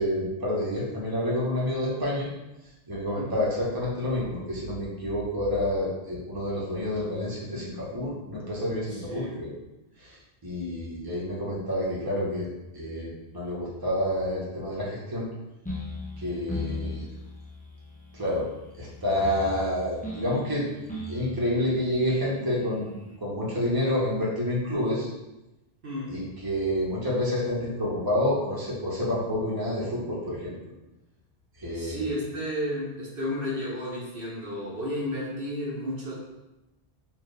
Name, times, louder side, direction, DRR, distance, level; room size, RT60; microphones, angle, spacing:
voice 1, 0.0-2.3 2.9-9.5 10.0-10.2 10.4-12.5 12.7-15.3 16.2-17.1 18.1-18.4 18.7-20.6 21.1-25.1 26.1-30.5 31.6-32.1, left 1 dB, 20° right, -6 dB, 1.1 m, -28 dB
voice 2, 8.9-9.3 25.8-26.2 31.7-36.1, equal, 65° right, -6 dB, 1.2 m, -32 dB
sound 1, 15.7-23.2, left 2 dB, 10° left, 0.6 m, -38 dB
4.3 x 2.8 x 3.4 m, 0.99 s
omnidirectional pair, 1.0 m